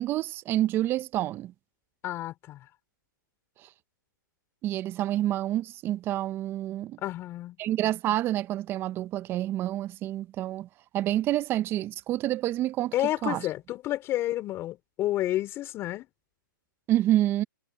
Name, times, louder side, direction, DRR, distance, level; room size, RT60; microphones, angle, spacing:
voice 1, 0.0-1.5 4.6-7.0 7.6-10.7 10.9-12.9 13.2-13.4 16.9-17.4, right 13 dB, 20° right, 0.8 m, -28 dB
voice 2, 2.0-2.6 7.0-7.6 12.9-16.1, left 14 dB, 20° left, 4.1 m, -30 dB
hypercardioid pair, 145°, 11 cm